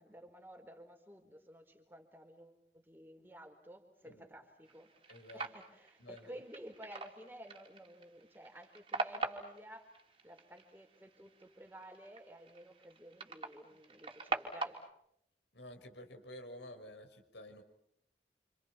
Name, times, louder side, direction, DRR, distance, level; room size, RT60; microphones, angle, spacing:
voice 1, 0.0-4.9 5.3-9.9 10.2-14.8, equal, 10° right, 4 dB, 4.3 m, -53 dB
sound 1, 4.6-14.9, right 3 dB, 30° right, 3.4 m, -44 dB
voice 2, 5.1-5.5 6.0-6.3 15.5-17.6, left 1 dB, 80° left, 6 dB, 5.8 m, -51 dB
28.5 x 28.5 x 6.0 m, 0.74 s
head